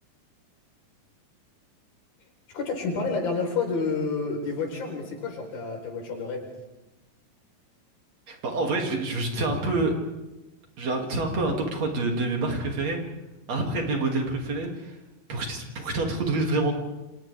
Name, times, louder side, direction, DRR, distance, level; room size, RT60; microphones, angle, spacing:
voice 1, 2.5-6.5, left 4 dB, 90° left, 1 dB, 6.0 m, -29 dB
voice 2, 8.3-9.9 10.8-13.0 13.5-15.0 15.3-16.7, right 2 dB, 50° right, 1 dB, 3.5 m, -27 dB
29.5 x 26.5 x 3.5 m, 1.0 s
omnidirectional pair, 4.0 m